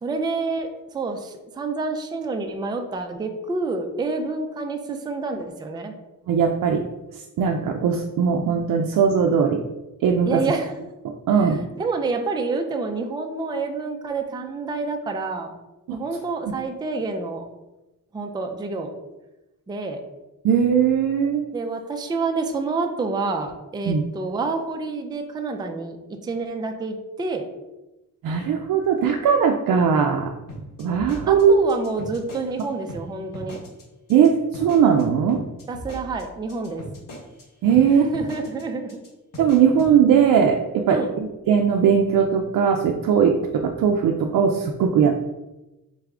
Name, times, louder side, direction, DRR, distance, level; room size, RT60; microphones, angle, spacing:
voice 1, 0.0-5.9 10.3-10.7 11.4-15.5 15.9-17.4 18.1-18.9 19.7-20.0 21.5-27.5 31.3-33.6 35.7-36.8 37.9-39.0 40.9-41.1, right 3 dB, 15° right, 4 dB, 0.3 m, -28 dB
voice 2, 6.3-6.8 7.1-9.6 10.0-10.4 11.0-11.6 15.9-16.0 20.4-21.5 23.9-24.0 28.2-30.3 30.8-31.5 34.1-35.4 37.6-38.1 39.4-45.2, right 7 dB, 75° right, 2 dB, 0.5 m, -19 dB
sound 1, 30.5-32.6 32.9-33.0 33.3-33.8 34.1-34.3 34.5-37.4 37.7-37.8 38.1-38.6 38.9-39.1 39.3-39.9, equal, 70° left, 1.4 m, -38 dB
4.0 x 3.4 x 3.6 m, 1.0 s
wide cardioid pair, 155°, 34 cm